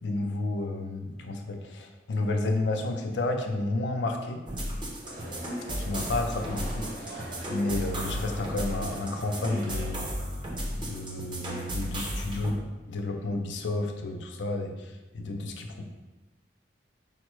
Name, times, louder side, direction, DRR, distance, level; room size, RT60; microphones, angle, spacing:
voice 1, 0.0-4.4 5.8-10.1 10.8-12.6 12.9-15.9, left 2 dB, 85° left, 4 dB, 0.5 m, -31 dB
sound 1, 4.5-12.5, equal, 25° right, 0.7 m, -34 dB
sound 2, 5.0-10.2, right 1 dB, 55° right, 0.9 m, -43 dB
5.0 x 2.1 x 4.6 m, 1.1 s
head